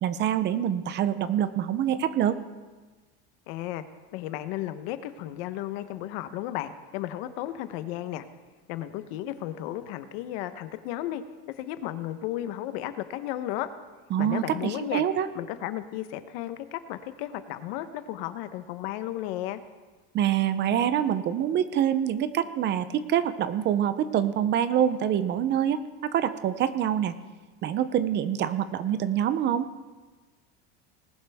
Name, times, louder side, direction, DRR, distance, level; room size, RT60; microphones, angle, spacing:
voice 1, 0.0-2.4 14.1-15.3 20.1-27.1 27.6-29.7, right 10 dB, 35° right, 13 dB, 0.6 m, -25 dB
voice 2, 3.5-3.8 4.1-8.2 8.7-11.2 11.6-13.7 14.2-15.0 15.3-19.6, left 13 dB, 70° left, 11 dB, 1.0 m, -34 dB
19.0 x 11.0 x 3.5 m, 1.3 s
cardioid pair, 150°, 32 cm